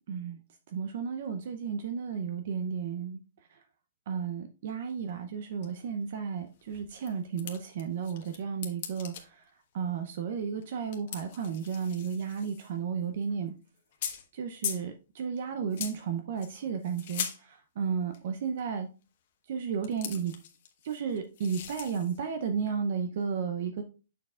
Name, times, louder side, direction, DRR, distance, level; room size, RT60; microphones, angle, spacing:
voice 1, 0.1-0.4 0.7-3.2 4.1-9.4 9.7-13.5 14.3-18.9 19.5-20.3 20.8-23.8, right 6 dB, 45° right, 0.6 m, -33 dB
sound 1, 5.1-5.2 5.6-5.7 6.0-6.1 6.4-8.4 8.6-9.2 10.6-10.7 10.9-12.8 13.1-13.3 13.8-14.3 14.6-14.9 15.7-16.0 16.4-17.4 18.1-18.3 19.8-22.2, left 9 dB, 40° left, 1.2 m, -40 dB
7.5 x 6.7 x 2.4 m
hypercardioid pair, 170°, 0 cm